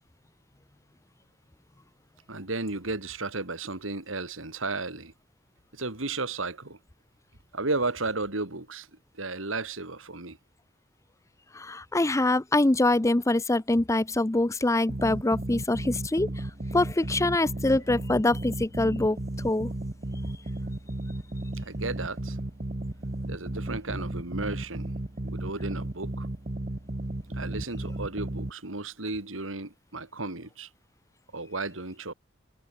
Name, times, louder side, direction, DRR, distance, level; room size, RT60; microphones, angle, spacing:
voice 1, 2.3-5.1 5.7-6.8 7.5-8.9 9.2-10.4 21.5-22.4 23.2-24.9 25.2-26.3 27.3-30.7 31.3-32.1, right 3 dB, 80° right, 3.3 m, -34 dB
voice 2, 11.5-16.3 16.7-19.2 19.4-19.7, left 2 dB, 15° left, 0.6 m, -24 dB
sound 1, 14.9-28.5, right 1 dB, 35° right, 1.3 m, -34 dB
head